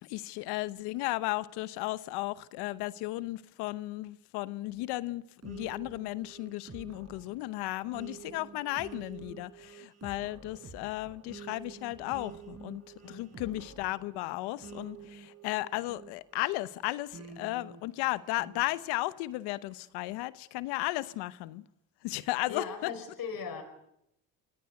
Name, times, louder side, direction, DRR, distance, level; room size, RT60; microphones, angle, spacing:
voice 1, 0.0-12.8 13.1-21.6 22.0-22.9, left 18 dB, 90° left, 0.9 m, -35 dB
sound 1, 5.4-16.5 17.1-18.7, right 6 dB, 40° right, 5.7 m, -49 dB
voice 2, 13.0-13.6 22.5-23.6, left 6 dB, 60° left, 5.2 m, -39 dB
26.0 x 17.5 x 8.3 m
supercardioid pair, 70°, 39 cm